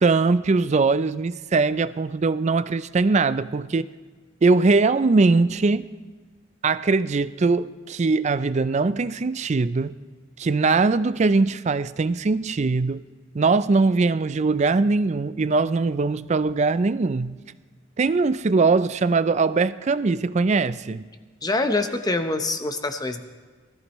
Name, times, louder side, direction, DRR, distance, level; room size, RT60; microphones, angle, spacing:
voice 1, 0.0-3.9 4.4-5.9 6.6-9.9 10.4-13.0 13.3-17.4 18.0-21.1, right 3 dB, 35° right, 0.4 m, -21 dB
voice 2, 21.4-23.2, left 2 dB, 20° left, 0.8 m, -25 dB
23.0 x 14.0 x 3.1 m
head